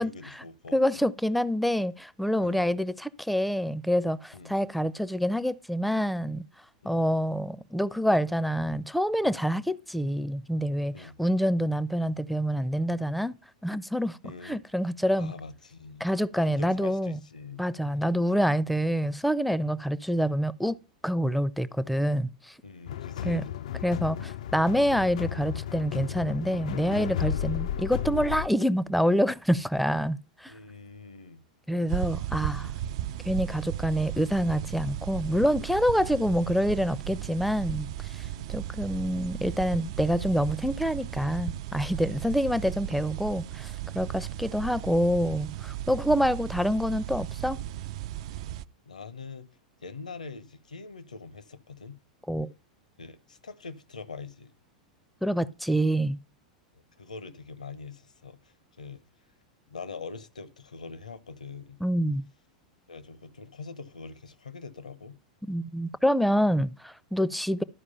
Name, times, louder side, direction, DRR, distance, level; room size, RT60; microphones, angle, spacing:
voice 1, 0.0-1.0 2.4-2.6 4.3-4.5 6.8-6.9 10.9-11.2 14.2-14.6 15.2-16.1 16.4-17.6 22.6-23.6 27.3-27.5 30.5-31.4 32.1-33.0 36.0-36.1 38.3-38.5 42.1-42.6 44.1-44.3 46.0-46.5 48.3-48.5 48.9-49.5 49.8-52.0 53.0-54.5 57.0-59.1 59.7-61.8 62.9-65.2, left 4 dB, 80° left, 0.9 m, -44 dB
voice 2, 0.7-6.4 6.8-13.3 13.6-14.2 14.4-15.3 16.0-17.2 17.6-20.8 21.0-22.5 23.2-23.4 23.8-30.5 31.7-32.7 33.2-47.6 52.3-52.5 55.2-56.2 61.8-62.2 65.5-67.6, equal, ahead, 0.5 m, -27 dB
sound 1, 22.9-28.5, left 10 dB, 65° left, 0.4 m, -33 dB
sound 2, 31.9-48.6, right 12 dB, 55° right, 0.4 m, -36 dB
12.5 x 4.9 x 5.5 m
figure-of-eight pair, 90°, 4 cm